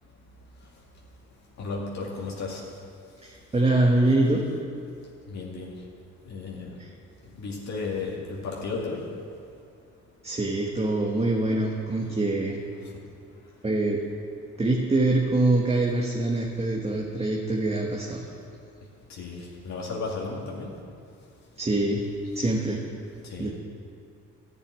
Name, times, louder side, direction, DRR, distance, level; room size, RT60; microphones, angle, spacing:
voice 1, 1.6-2.6 5.3-5.7 6.3-6.7 7.4-9.0 19.2-20.7 23.3-23.5, left 4 dB, 65° left, -4 dB, 2.3 m, -34 dB
voice 2, 3.2-4.4 6.8-6.9 10.2-12.6 13.6-14.0 14.6-18.2 21.6-22.0 22.3-22.8 23.4-23.5, right 2 dB, 20° right, -2 dB, 1.5 m, -24 dB
12.5 x 6.9 x 9.7 m, 2.4 s
cardioid pair, 90°, 30 cm